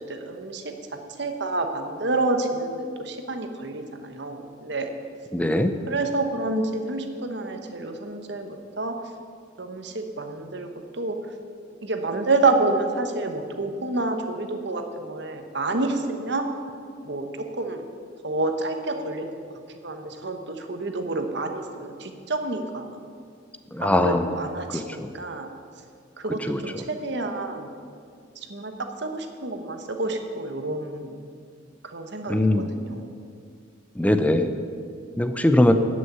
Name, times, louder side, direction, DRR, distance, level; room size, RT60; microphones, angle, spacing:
voice 1, 0.1-0.7 1.2-4.9 5.9-8.9 9.6-10.7 11.0-11.1 11.8-16.5 17.0-17.8 18.2-19.4 19.8-23.0 23.8-25.6 26.2-27.7 28.5-28.7 29.0-31.2 31.9-33.0, right 2 dB, 60° right, 5 dB, 1.2 m, -28 dB
voice 2, 5.3-5.7 23.7-24.3 24.7-25.1 26.5-26.6 32.3-32.7 34.0-34.5 35.2-35.7, left 1 dB, 5° left, 8 dB, 0.6 m, -21 dB
13.0 x 6.4 x 9.2 m, 2.2 s
head